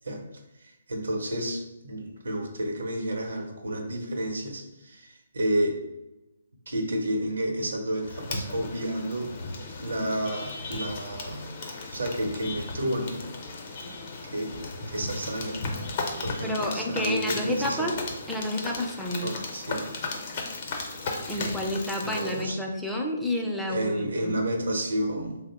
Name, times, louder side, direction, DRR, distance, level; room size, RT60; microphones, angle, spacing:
voice 1, 0.6-5.8 6.7-9.3 9.8-11.5 11.9-13.4 14.2-14.6 14.9-15.7 16.2-17.9 19.2-19.9 21.3-21.6 22.0-22.6 23.7-25.4, right 1 dB, 90° right, 2 dB, 0.8 m, -31 dB
sound 1, 8.0-22.4, left 3 dB, 40° left, 0.6 m, -36 dB
voice 2, 16.4-18.0 18.3-19.4 21.3-24.4, left 1 dB, ahead, -1 dB, 0.4 m, -30 dB
2.9 x 2.0 x 4.1 m, 0.98 s
hypercardioid pair, 155°, 0 cm